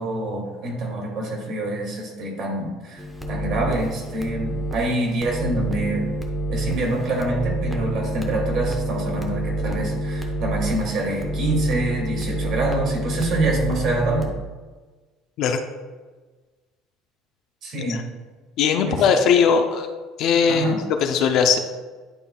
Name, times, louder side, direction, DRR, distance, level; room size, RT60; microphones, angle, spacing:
voice 1, 0.0-6.1 6.5-14.3 17.6-18.0 18.9-19.0 20.5-20.8, right 2 dB, 40° right, -1 dB, 2.2 m, -26 dB
sound 1, 3.0-14.3, right 1 dB, ahead, 0.7 m, -28 dB
voice 2, 18.6-19.9 20.2-21.6, left 6 dB, 45° left, 5 dB, 0.5 m, -19 dB
10.5 x 5.4 x 2.3 m, 1.3 s
cardioid pair, 175°, 0 cm